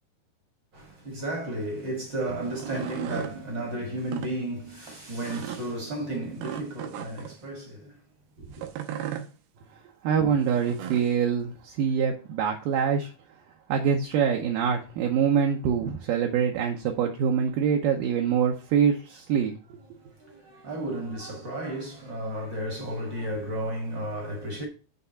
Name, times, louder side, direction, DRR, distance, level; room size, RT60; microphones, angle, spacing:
voice 1, 0.7-8.0 8.4-8.6 19.9-24.7, right 1 dB, 45° right, 1.5 m, -33 dB
sound 1, 2.4-3.4 4.0-4.3 5.2-5.6 6.4-7.4 8.5-9.3 10.5-11.1, right 10 dB, 90° right, 2.7 m, -36 dB
voice 2, 10.0-13.1 13.7-19.8, right 7 dB, 75° right, 2.2 m, -25 dB
8.1 x 3.5 x 5.5 m
omnidirectional pair, 4.4 m